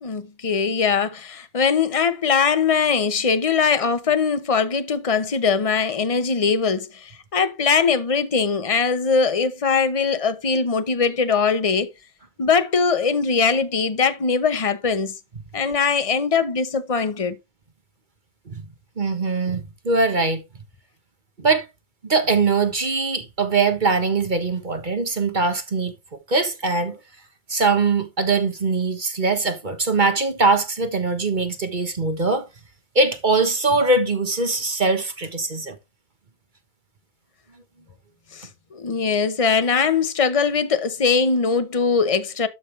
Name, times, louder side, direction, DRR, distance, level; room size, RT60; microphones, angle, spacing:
voice 1, 0.0-11.9 12.4-15.1 15.5-17.4 38.3-42.5, left 5 dB, 35° left, 0.5 m, -21 dB
voice 2, 19.0-20.4 21.4-21.7 22.0-25.9 26.3-27.0 27.5-32.4 32.9-35.7, right 3 dB, 30° right, 1.2 m, -21 dB
12.5 x 5.4 x 3.3 m
omnidirectional pair, 2.0 m